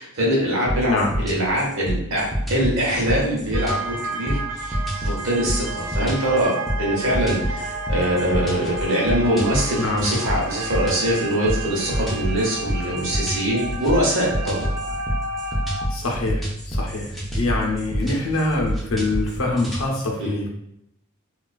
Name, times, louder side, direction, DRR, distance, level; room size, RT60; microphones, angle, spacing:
voice 1, 0.0-14.7 20.2-20.4, equal, 65° right, -4 dB, 0.8 m, -23 dB
sound 1, 0.7-19.9, equal, ahead, 0.3 m, -27 dB
sound 2, 3.5-15.9, right 2 dB, 85° right, 0.3 m, -32 dB
voice 2, 9.7-10.1 15.9-20.5, left 2 dB, 75° left, 0 dB, 0.6 m, -25 dB
2.4 x 2.3 x 2.2 m, 0.78 s
head